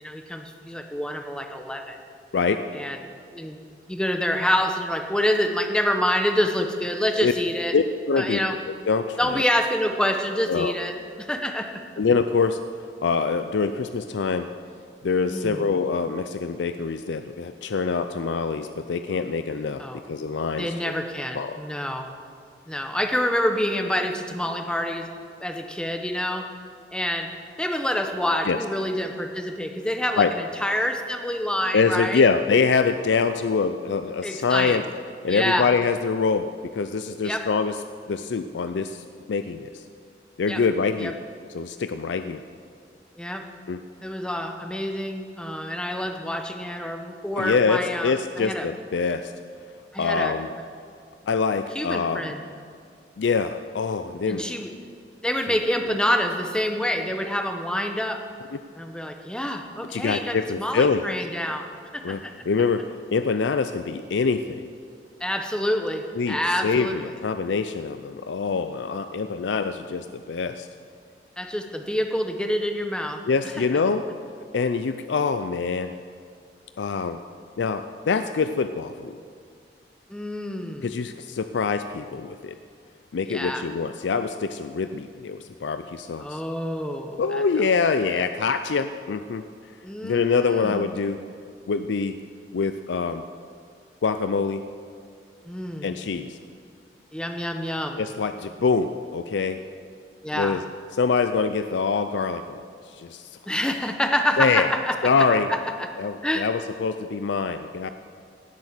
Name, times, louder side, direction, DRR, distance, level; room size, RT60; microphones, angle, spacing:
voice 1, 0.0-2.0 2.7-3.0 3.3-3.6 3.9-7.7 8.1-8.6 9.2-11.8 15.3-15.7 19.8-20.0 20.5-22.1 22.7-25.1 25.4-26.5 26.9-27.3 27.6-32.2 34.2-34.8 35.3-35.7 37.2-37.5 40.5-40.6 41.0-41.1 43.2-43.4 44.0-48.7 49.9-50.3 51.7-52.4 54.3-54.7 55.2-58.2 58.8-61.6 61.9-62.3 65.2-67.1 71.4-73.2 73.6-73.8 80.1-80.9 83.3-83.7 86.2-87.6 89.8-90.9 95.4-95.9 97.1-98.0 100.2-100.6 103.5-105.1 105.5-105.9 106.2-106.5, left 1 dB, 5° left, 5 dB, 1.0 m, -27 dB
voice 2, 2.3-2.6 7.2-7.3 7.7-8.4 8.9-9.4 10.5-10.7 12.0-12.6 13.0-14.5 15.0-20.7 21.3-21.6 28.5-28.6 30.2-30.3 31.7-34.8 35.2-37.7 38.1-39.8 40.4-41.2 41.5-42.4 43.7-43.8 47.4-49.3 50.0-50.5 51.3-52.2 53.2-54.4 59.9-61.0 62.0-64.6 66.2-70.7 73.3-74.0 74.5-75.9 76.8-77.2 77.6-79.2 80.8-82.6 83.1-86.4 87.2-89.5 90.0-91.2 91.7-92.2 92.5-93.2 94.0-94.6 95.8-96.4 98.0-99.6 100.3-100.6 100.9-102.6 103.0-103.3 104.4-104.7 105.0-105.5 106.0-107.9, left 5 dB, 75° left, 10 dB, 0.4 m, -24 dB
17.0 x 7.9 x 6.5 m, 2.2 s
head